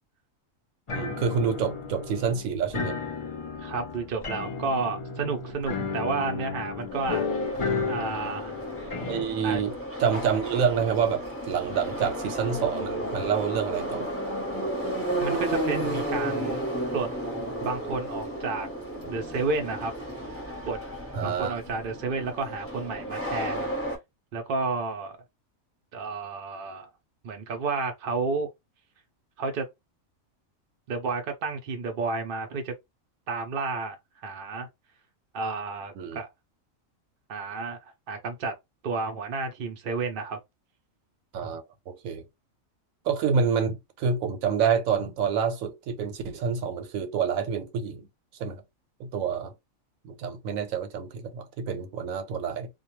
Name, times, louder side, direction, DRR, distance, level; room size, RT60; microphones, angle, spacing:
sound 1, 0.9-9.2, left 5 dB, 50° left, 0.4 m, -33 dB
voice 1, 0.9-3.0 9.1-14.1 21.1-21.6 36.0-36.2 41.3-42.2 43.0-48.1 48.4-48.6 49.0-49.5 50.0-52.7, right 6 dB, 90° right, 1.1 m, -28 dB
voice 2, 3.6-7.2 7.9-8.6 9.4-9.6 15.2-16.6 16.9-17.1 17.6-18.7 19.1-19.9 20.7-20.8 21.2-23.7 24.3-25.2 25.9-26.9 27.2-28.5 29.4-29.7 30.9-32.7 33.3-34.0 34.2-34.7 35.3-36.3 37.3-37.8 38.1-38.5 38.8-40.4, right 4 dB, 60° right, 0.6 m, -31 dB
Subway metro underground, 6.9-24.0, right 1 dB, 10° left, 0.7 m, -33 dB
2.3 x 2.2 x 3.0 m
omnidirectional pair, 1.4 m